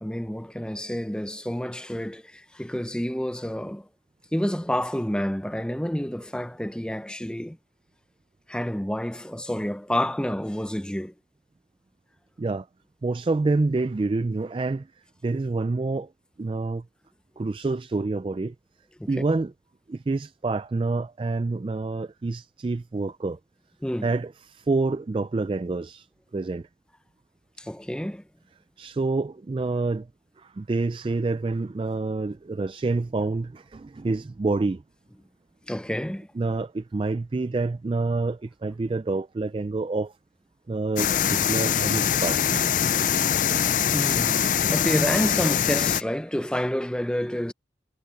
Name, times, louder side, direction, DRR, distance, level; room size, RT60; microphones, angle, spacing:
voice 1, 0.0-3.9 4.3-7.6 8.5-11.1 19.0-19.1 23.8-24.1 27.6-28.2 35.7-36.3 43.9-47.5, equal, 5° left, 0.7 m, -29 dB
voice 2, 13.0-14.9 15.2-16.1 16.4-16.8 17.4-18.5 19.1-19.5 19.9-23.4 24.0-26.1 26.3-26.7 28.8-30.1 30.4-34.8 36.4-40.2 40.7-42.8 43.1-43.2 43.7-43.9 44.5-44.6, right 3 dB, 30° right, 0.3 m, -27 dB
sound 1, 41.0-46.0, left 9 dB, 45° left, 0.4 m, -23 dB
head